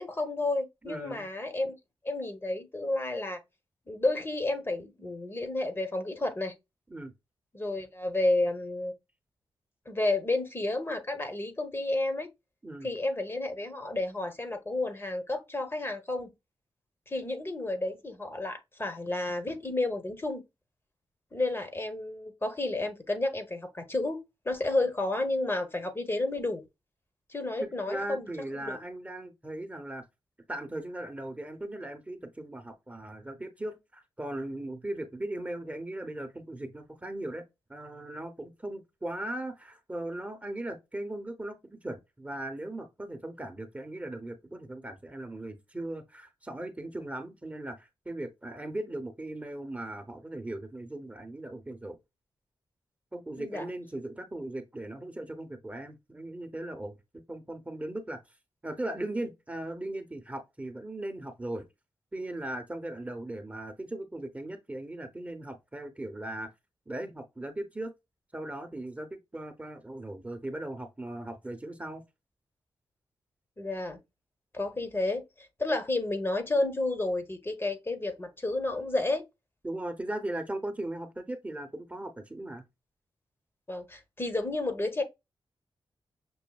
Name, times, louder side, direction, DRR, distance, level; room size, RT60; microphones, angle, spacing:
voice 1, 0.0-1.8 2.0-3.4 3.9-6.5 7.5-8.9 9.9-12.3 12.8-16.3 17.1-20.4 21.3-26.6 27.3-28.6 53.3-53.6 73.6-74.0 74.5-79.2 83.7-85.0, left 2 dB, 25° left, 1.0 m, -31 dB
voice 2, 0.9-1.3 6.9-7.1 12.6-12.9 27.6-30.0 30.5-37.4 37.7-52.0 53.1-58.2 58.6-61.7 62.1-66.5 66.9-67.9 68.3-72.0 79.6-82.6, right 1 dB, 15° right, 0.9 m, -38 dB
6.2 x 2.6 x 2.3 m
cardioid pair, 75°, 9 cm